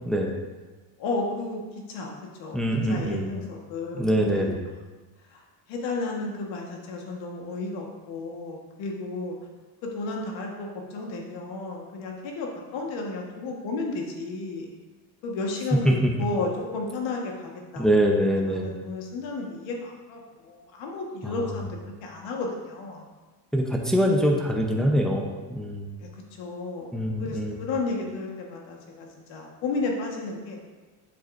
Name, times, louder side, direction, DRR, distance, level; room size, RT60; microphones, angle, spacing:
voice 1, 1.0-1.6 1.9-2.1 2.4-2.6 2.9-4.5 5.3-5.4 5.7-9.4 9.9-14.7 15.2-17.8 18.4-23.0 26.0-30.6, left 3 dB, 75° left, 0 dB, 1.7 m, -33 dB
voice 2, 2.5-3.3 3.9-4.7 15.8-16.1 17.8-18.7 21.2-21.4 23.5-25.9 26.9-27.6, equal, ahead, 0 dB, 0.8 m, -24 dB
7.8 x 7.7 x 2.7 m, 1.3 s
cardioid pair, 120°, 45 cm